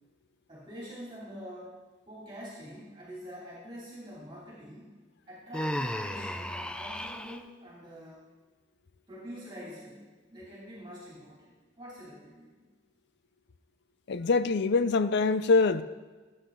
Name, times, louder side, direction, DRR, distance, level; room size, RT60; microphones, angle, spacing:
voice 1, 0.5-1.8 2.1-4.9 5.3-8.3 9.1-10.0 10.3-12.6, equal, 25° right, -6 dB, 2.8 m, -45 dB
Human voice, 5.5-7.4, left 1 dB, 5° left, 0.4 m, -34 dB
voice 2, 14.1-15.8, left 3 dB, 60° left, 13 dB, 0.5 m, -24 dB
15.0 x 8.6 x 3.8 m, 1.3 s
head